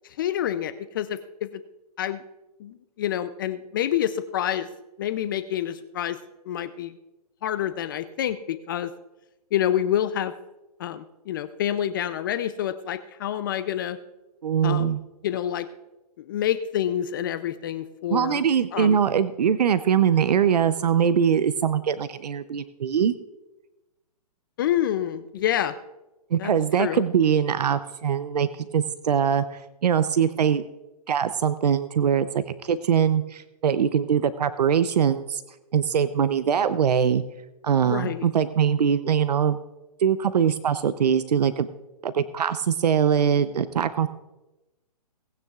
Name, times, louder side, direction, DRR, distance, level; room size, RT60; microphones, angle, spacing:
voice 1, 0.2-1.5 2.0-2.2 2.6-4.7 5.0-6.2 6.5-7.0 7.4-8.9 9.5-10.3 10.8-14.0 14.6-15.0 15.2-15.7 16.2-18.4 18.7-19.0 24.6-25.7 26.4-26.5 26.8-27.0 37.8-38.3, left 11 dB, 35° left, 12 dB, 0.4 m, -27 dB
voice 2, 14.4-15.0 18.1-23.1 26.3-30.6 31.1-35.4 35.7-37.2 37.6-39.6 40.0-41.7 42.0-44.1, right 8 dB, 85° right, 14 dB, 0.6 m, -22 dB
19.0 x 9.3 x 2.4 m, 1.0 s
hypercardioid pair, 155°, 20 cm